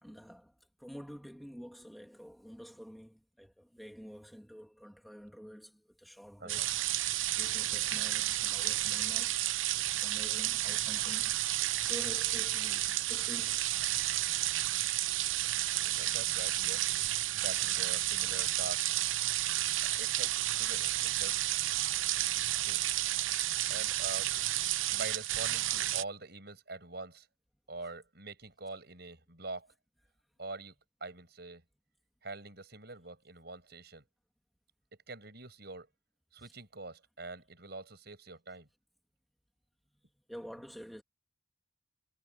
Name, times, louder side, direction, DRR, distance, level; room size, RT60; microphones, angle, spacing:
voice 1, 0.0-6.8 7.3-9.4 10.0-11.4 11.8-13.6 13.9-14.1 19.3-19.9 20.5-20.6 40.3-41.0, equal, ahead, 2.3 m, -49 dB
sound 1, 6.5-26.0, right 14 dB, 80° right, 0.7 m, -31 dB
voice 2, 15.8-16.9 17.3-18.9 19.8-21.5 22.6-22.8 23.7-24.3 24.9-27.3 27.7-29.7 30.4-30.7 31.0-31.6 32.2-34.0 35.1-35.9 36.3-38.7, right 3 dB, 55° right, 7.2 m, -45 dB
head